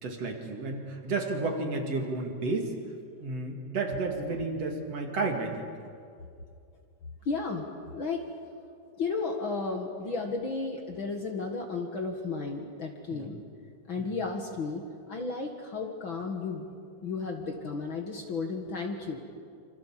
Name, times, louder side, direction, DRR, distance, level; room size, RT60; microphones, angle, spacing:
voice 1, 0.0-2.7 3.2-5.6 13.1-13.2 14.0-14.1, right 3 dB, 55° right, 3 dB, 3.2 m, -32 dB
voice 2, 7.3-7.7 7.9-8.2 8.9-13.4 13.9-14.8 15.1-16.7 17.0-19.2, left 4 dB, 45° left, 3 dB, 2.1 m, -33 dB
27.5 x 25.5 x 7.5 m, 2.4 s
omnidirectional pair, 3.6 m